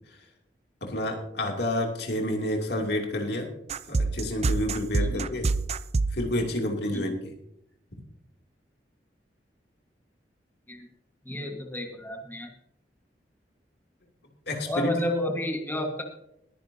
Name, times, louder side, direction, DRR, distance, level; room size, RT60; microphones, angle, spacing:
voice 1, 0.8-3.5 3.9-5.5 6.1-7.3 7.9-8.0 14.5-14.9, left 1 dB, 65° left, 2 dB, 2.7 m, -29 dB
sound 1, 3.7-6.2, right 3 dB, 40° right, 0.5 m, -26 dB
voice 2, 11.2-12.5 14.7-16.0, left 1 dB, 10° left, 2 dB, 1.5 m, -31 dB
21.0 x 10.0 x 2.8 m, 0.76 s
head